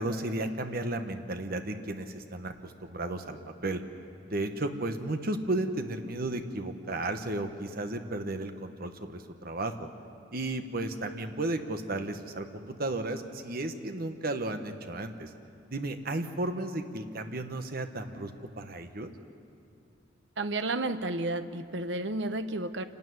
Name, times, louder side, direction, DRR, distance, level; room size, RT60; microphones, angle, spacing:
voice 1, 0.0-3.8 4.3-9.9 10.3-15.3 15.7-18.3 18.6-19.1, right 2 dB, 55° right, 7 dB, 1.3 m, -34 dB
voice 2, 20.4-22.8, right 2 dB, 70° right, 10 dB, 0.9 m, -32 dB
28.0 x 12.5 x 9.5 m, 2.5 s
head